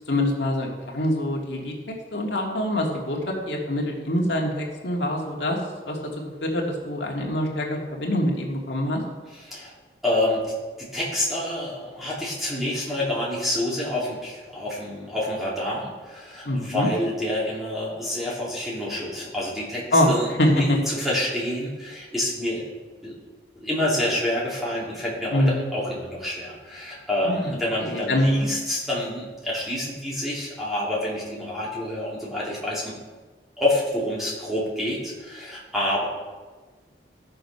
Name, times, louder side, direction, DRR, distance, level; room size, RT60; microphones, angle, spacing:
voice 1, 0.1-5.6 5.9-6.0 6.4-9.0 16.4-16.9 19.9-20.1 20.4-20.8 25.3-25.7 27.2-28.4, left 1 dB, 75° left, -1 dB, 2.0 m, -24 dB
voice 2, 9.3-9.7 10.0-10.4 10.8-22.6 23.0-23.2 23.5-33.0 33.6-36.1, left 1 dB, ahead, -7 dB, 2.9 m, -28 dB
13.5 x 6.7 x 5.5 m, 1.3 s
head